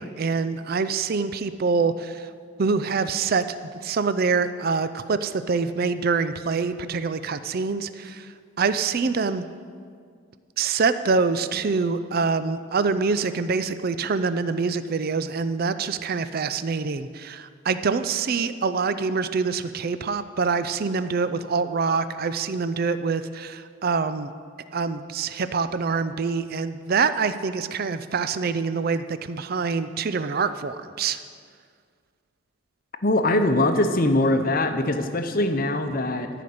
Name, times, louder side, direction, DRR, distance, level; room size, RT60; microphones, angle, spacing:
voice 1, 0.0-2.3 2.6-3.4 3.8-8.3 8.6-9.4 10.6-24.3 24.7-31.2, right 4 dB, 45° right, 12 dB, 0.4 m, -25 dB
voice 2, 33.0-36.3, left 1 dB, 40° left, 7 dB, 0.8 m, -22 dB
14.5 x 5.0 x 8.5 m, 2.1 s
head